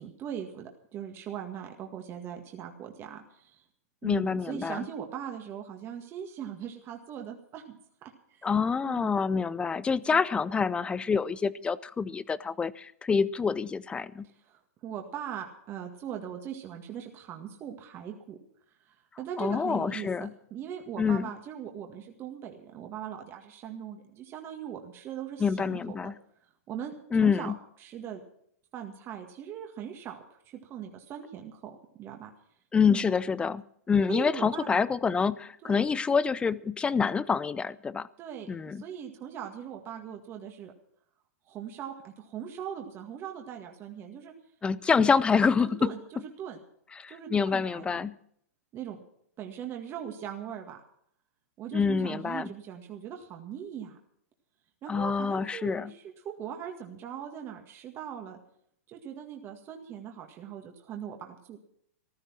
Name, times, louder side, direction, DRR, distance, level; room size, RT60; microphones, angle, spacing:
voice 1, 0.0-3.6 4.0-7.8 8.3-8.5 8.8-9.1 10.1-10.2 14.2-18.4 18.9-26.0 26.7-26.9 27.2-27.5 27.8-28.2 28.7-32.3 32.9-33.1 34.1-34.7 35.6-35.9 38.2-40.7 41.5-44.3 45.0-45.1 45.6-46.6 47.1-48.0 48.7-49.0 49.4-50.8 51.6-54.0 54.8-58.4 58.9-61.6, right 9 dB, 30° right, 1.9 m, -40 dB
voice 2, 4.0-4.9 8.4-14.3 19.4-20.3 21.0-21.3 25.4-26.1 27.1-27.6 32.7-38.1 38.5-38.8 44.6-45.9 47.0-48.1 51.7-52.5 54.9-55.9, left 5 dB, 10° left, 0.5 m, -27 dB
15.0 x 12.5 x 6.0 m
hypercardioid pair, 125°, 8 cm